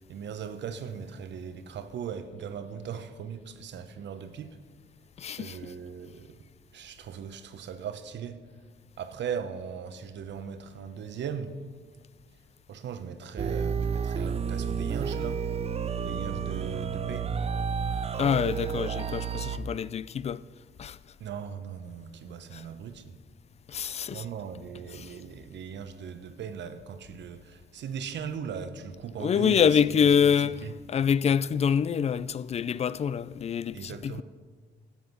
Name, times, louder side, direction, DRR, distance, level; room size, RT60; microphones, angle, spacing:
voice 1, 0.0-4.6 5.4-6.3 6.7-8.4 9.0-11.6 12.7-15.4 16.0-17.3 21.2-23.1 24.1-29.8 30.2-30.3 30.6-30.7 33.7-34.2, right 7 dB, 65° right, 0.9 m, -38 dB
voice 2, 5.2-5.7 18.2-20.4 20.8-21.0 22.5-22.6 23.7-24.3 24.9-25.2 29.2-34.2, left 7 dB, 35° left, 0.4 m, -26 dB
sound 1, 13.4-19.6, right 6 dB, 30° right, 0.6 m, -31 dB
13.0 x 7.8 x 5.9 m
cardioid pair, 90°, 20 cm